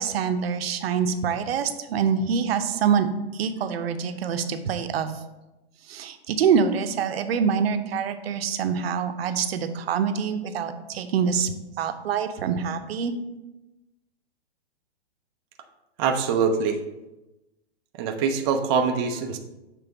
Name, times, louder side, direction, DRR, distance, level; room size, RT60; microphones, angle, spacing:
voice 1, 0.0-3.1 3.3-5.2 5.9-13.1, right 7 dB, 60° right, 8 dB, 0.7 m, -25 dB
voice 2, 16.0-16.8 18.0-19.4, right 5 dB, 20° right, 4 dB, 0.4 m, -24 dB
6.9 x 3.3 x 4.7 m, 1.0 s
hypercardioid pair, 130°, 34 cm